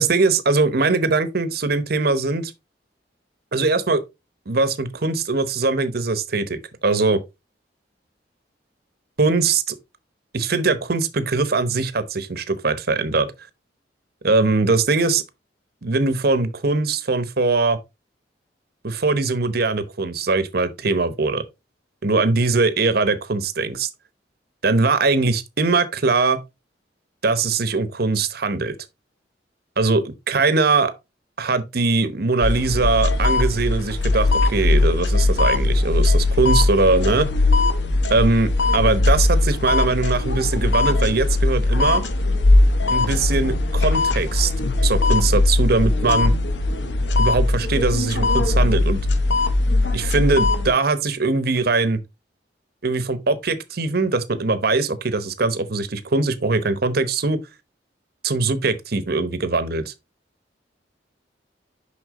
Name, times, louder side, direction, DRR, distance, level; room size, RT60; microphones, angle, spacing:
voice 1, 0.0-2.5 3.5-4.0 4.5-7.2 9.2-9.8 10.3-13.3 14.2-15.2 15.8-17.8 18.8-21.4 22.0-23.9 24.6-26.4 27.2-28.7 29.8-30.9 31.4-37.3 38.1-42.0 42.9-44.5 44.8-46.3 47.2-49.0 49.9-52.0 52.8-57.4 58.2-59.9, right 3 dB, 60° right, 1.0 m, -21 dB
sound 1, 32.4-50.7, left 2 dB, 75° left, 0.9 m, -19 dB
6.4 x 5.7 x 3.7 m
head